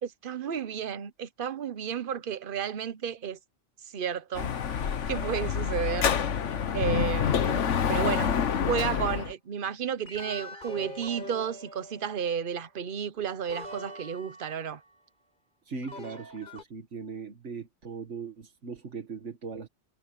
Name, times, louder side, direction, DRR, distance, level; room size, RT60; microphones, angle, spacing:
voice 1, 0.0-3.4 3.8-6.1 6.7-7.6 7.9-14.8, right 8 dB, 50° right, 1.0 m, -32 dB
Dog / Motorcycle, 4.3-9.3, left 7 dB, 90° left, 1.4 m, -27 dB
sound 1, 7.2-8.7 10.1-12.4 13.5-14.9 15.8-16.6, left 1 dB, 40° left, 4.5 m, -44 dB
voice 2, 15.6-19.7, right 5 dB, 80° right, 2.1 m, -39 dB
omnidirectional pair, 1.2 m